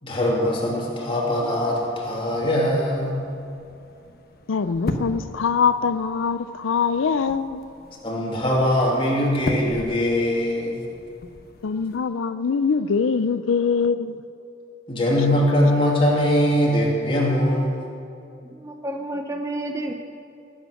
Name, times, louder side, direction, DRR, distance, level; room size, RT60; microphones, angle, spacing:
voice 1, 0.0-3.2 8.0-10.8 14.9-17.7, left 1 dB, 25° left, -3 dB, 2.7 m, -21 dB
sound 1, 1.2-12.0, left 1 dB, 50° left, 1.1 m, -37 dB
voice 2, 4.5-7.7 11.6-14.2, left 5 dB, 85° left, 11 dB, 0.5 m, -23 dB
voice 3, 18.5-19.9, right 1 dB, 15° right, 3 dB, 0.7 m, -30 dB
18.5 x 8.9 x 6.5 m, 2.6 s
head